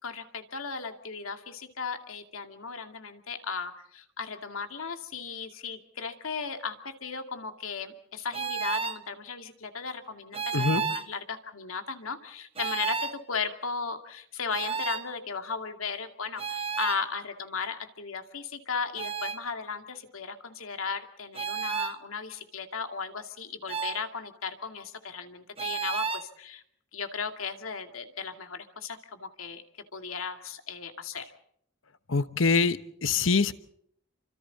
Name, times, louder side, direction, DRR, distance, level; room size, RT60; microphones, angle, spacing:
voice 1, 0.0-26.6 26.9-29.6 29.9-31.3, left 5 dB, 85° left, 6 dB, 2.4 m, -36 dB
sound 1, 8.3-9.0 10.3-11.1 12.6-13.2 14.5-15.1 16.4-17.0 19.0-19.4 21.3-22.0 23.7-24.0 25.6-26.3, right 6 dB, 25° right, 1.0 m, -31 dB
voice 2, 32.1-33.5, left 4 dB, 70° left, 13 dB, 1.1 m, -24 dB
29.5 x 25.5 x 4.1 m, 0.69 s
head